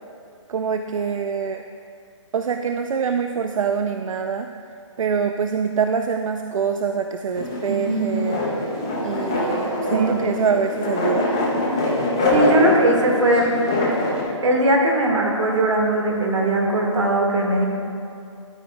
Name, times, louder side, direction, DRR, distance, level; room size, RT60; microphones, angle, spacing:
voice 1, 0.5-1.6 2.3-4.5 5.0-8.4 9.0-11.3, right 6 dB, 85° right, 6 dB, 0.5 m, -24 dB
sound 1, 7.3-14.2, left 1 dB, 10° left, 0.3 m, -23 dB
voice 2, 7.7-8.1 9.9-10.2 12.2-13.5 14.4-17.7, right 1 dB, 65° right, 0 dB, 1.8 m, -20 dB
12.5 x 9.0 x 2.3 m, 2.5 s
hypercardioid pair, 175°, 16 cm